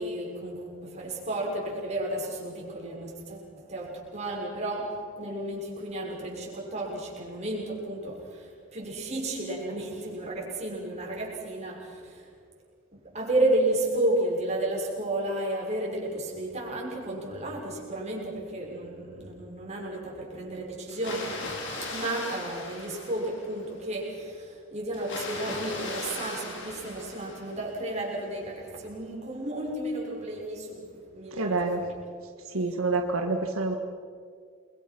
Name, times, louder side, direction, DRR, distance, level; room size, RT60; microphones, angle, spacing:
voice 1, 0.0-12.3 12.9-21.5 21.8-32.0, right 1 dB, 35° right, -2 dB, 6.1 m, -32 dB
Water, 20.9-23.7 24.9-27.7, left 2 dB, 60° left, 4.7 m, -38 dB
voice 2, 31.3-31.8 32.5-33.7, right 3 dB, 85° right, 4 dB, 1.6 m, -27 dB
29.0 x 22.5 x 6.1 m, 2.2 s
head